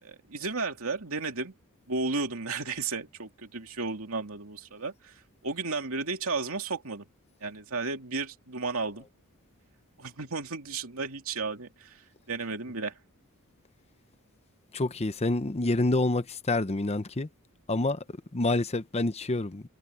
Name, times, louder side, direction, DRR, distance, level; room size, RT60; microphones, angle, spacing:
voice 1, 0.0-1.5 1.9-7.0 7.4-9.1 10.0-12.0 12.3-13.0, right 3 dB, 65° right, 2.8 m, -33 dB
voice 2, 14.7-17.3 17.7-18.0 18.3-19.6, left 2 dB, 30° left, 0.8 m, -27 dB
open air
head